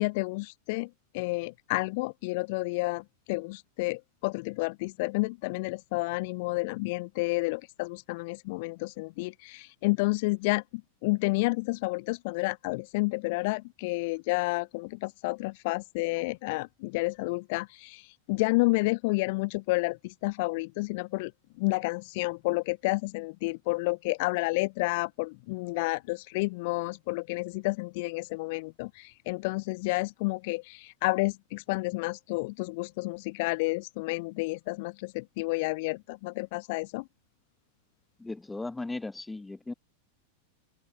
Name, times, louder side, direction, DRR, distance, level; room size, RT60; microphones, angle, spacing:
voice 1, 0.0-21.3 21.6-37.1, left 25 dB, 50° left, 1.5 m, -30 dB
voice 2, 38.2-39.7, left 2 dB, 10° left, 2.3 m, -37 dB
figure-of-eight pair, 90°, 0 cm